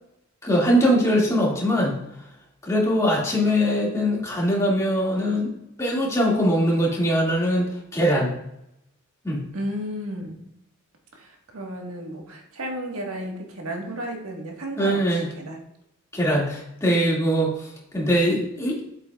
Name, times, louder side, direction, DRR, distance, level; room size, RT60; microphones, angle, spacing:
voice 1, 0.4-2.0 2.6-5.5 5.8-8.3 9.2-9.4 14.8-15.3 16.1-18.8, equal, 15° left, -4 dB, 2.1 m, -22 dB
voice 2, 9.5-10.4 11.1-15.6, equal, 80° right, 1 dB, 1.5 m, -33 dB
8.2 x 8.0 x 2.3 m, 0.81 s
head